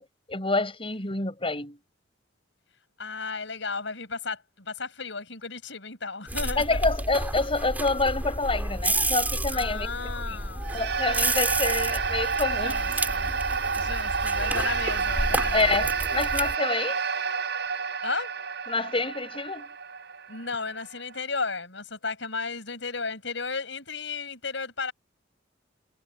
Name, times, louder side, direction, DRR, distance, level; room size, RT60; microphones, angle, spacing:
voice 1, 0.0-1.8 6.6-9.9 10.3-10.4 10.7-12.8 15.5-17.0 18.7-19.8, left 3 dB, 30° left, 7.0 m, -27 dB
voice 2, 3.0-6.8 9.5-10.8 12.6-13.3 13.7-15.9 18.0-18.3 20.3-24.9, left 4 dB, 75° left, 7.9 m, -34 dB
sound 1, 6.3-16.6, right 1 dB, 10° right, 4.1 m, -30 dB
sound 2, 10.6-21.2, right 5 dB, 65° right, 6.0 m, -29 dB
head